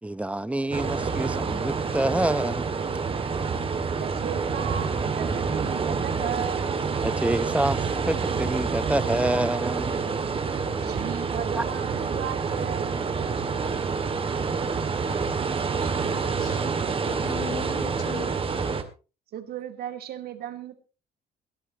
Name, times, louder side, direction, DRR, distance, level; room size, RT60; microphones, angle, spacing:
voice 1, 0.0-2.7 7.0-10.0 11.6-11.7, right 1 dB, 10° right, 0.8 m, -27 dB
sound 1, 0.7-18.8, right 5 dB, 35° right, 2.3 m, -27 dB
voice 2, 3.9-6.8 10.8-13.1 15.7-16.2 19.3-20.7, right 10 dB, 65° right, 2.5 m, -36 dB
voice 3, 16.4-18.4, left 8 dB, 60° left, 4.4 m, -40 dB
21.5 x 13.0 x 3.0 m
cardioid pair, 110°, 17 cm